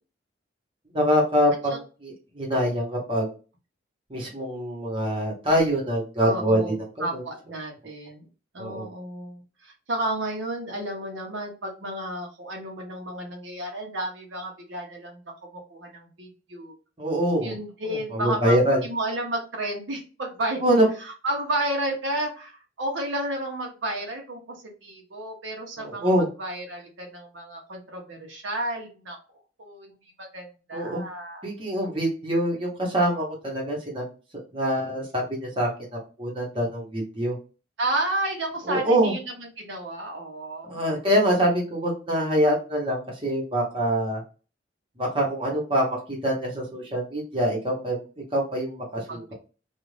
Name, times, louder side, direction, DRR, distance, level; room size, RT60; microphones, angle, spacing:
voice 1, 0.9-3.3 4.1-7.2 8.6-8.9 17.0-17.5 17.9-18.8 20.6-20.8 25.8-26.3 30.7-31.0 31.4-34.1 34.5-37.4 38.7-39.1 40.7-44.2 45.0-48.0 48.3-49.3, equal, 30° right, -3 dB, 1.0 m, -25 dB
voice 2, 6.2-8.3 8.5-15.2 15.5-16.7 17.4-20.6 21.0-26.1 26.4-29.2 29.6-31.5 37.8-40.8 49.1-49.3, right 1 dB, 75° right, 1 dB, 0.8 m, -32 dB
2.5 x 2.4 x 3.1 m, 0.34 s
head